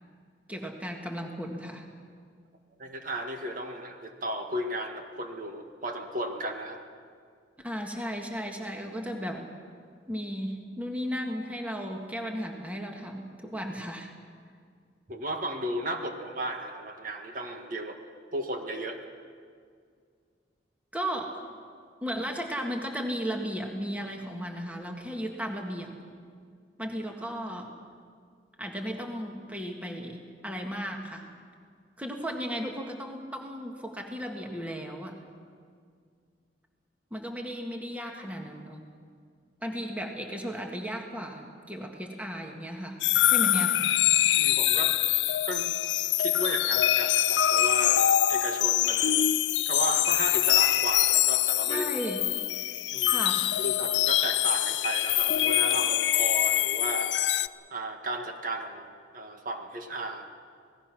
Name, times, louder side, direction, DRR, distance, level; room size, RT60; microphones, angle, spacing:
voice 1, 0.5-1.9 7.6-9.5 10.1-14.1 20.9-21.4 22.0-25.9 26.8-27.7 28.6-31.3 32.0-35.2 37.1-38.8 39.6-43.0 43.3-43.8 51.7-52.2 53.0-53.6, equal, 10° right, 2 dB, 1.8 m, -35 dB
voice 2, 2.8-6.8 15.1-18.0 18.3-19.0 44.4-44.9 45.5-45.8 46.2-49.2 49.7-51.9 52.9-53.2 53.6-57.1 57.7-58.8 59.1-60.3, right 1 dB, 50° right, 4 dB, 1.8 m, -34 dB
sound 1, 43.0-57.5, left 13 dB, 85° left, 0.5 m, -24 dB
27.0 x 18.5 x 6.1 m, 2.1 s
head